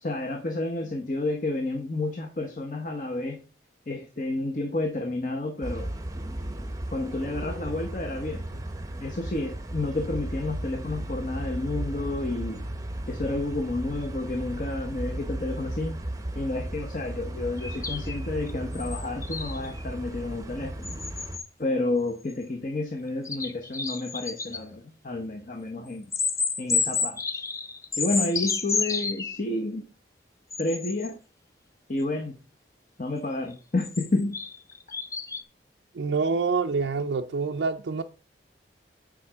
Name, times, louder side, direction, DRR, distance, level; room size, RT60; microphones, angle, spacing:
voice 1, 0.0-3.4 3.9-5.9 6.9-8.4 9.0-12.7 13.1-16.0 16.3-20.9 21.6-26.1 26.6-27.2 28.0-29.9 30.6-31.2 31.9-32.4 33.0-34.4, left 2 dB, 45° left, 1.0 m, -30 dB
sound 1, 5.6-21.4, right 1 dB, 20° right, 0.7 m, -35 dB
sound 2, 17.6-19.8 20.8-21.5 22.3-22.4 23.3-24.6 26.1-29.4 30.5-31.1 33.5-35.4, left 5 dB, 15° left, 0.5 m, -30 dB
voice 2, 35.9-38.0, right 4 dB, 65° right, 0.4 m, -26 dB
9.5 x 5.1 x 3.5 m
head